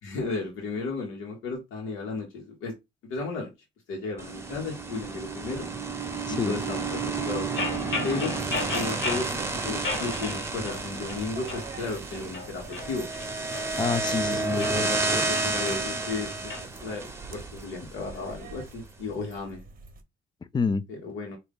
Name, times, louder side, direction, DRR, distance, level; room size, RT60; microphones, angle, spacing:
voice 1, 0.0-2.7 3.1-3.5 3.9-5.7 6.3-7.5 8.0-8.3 8.7-9.3 9.6-13.1 15.3-19.6 20.9-21.4, left 4 dB, 90° left, 1.2 m, -34 dB
sound 1, 4.2-18.4, right 3 dB, 15° right, 0.9 m, -31 dB
sound 2, 7.6-9.3 9.8-10.8 11.1-11.7 12.2-14.0 14.5-16.6, left 3 dB, 65° left, 1.5 m, -34 dB
sound 3, 8.4-20.0, right 5 dB, 45° right, 0.8 m, -45 dB
voice 2, 13.8-15.3 20.5-20.8, left 5 dB, 20° left, 0.4 m, -28 dB
3.8 x 2.6 x 3.6 m
cardioid pair, 90°, 20 cm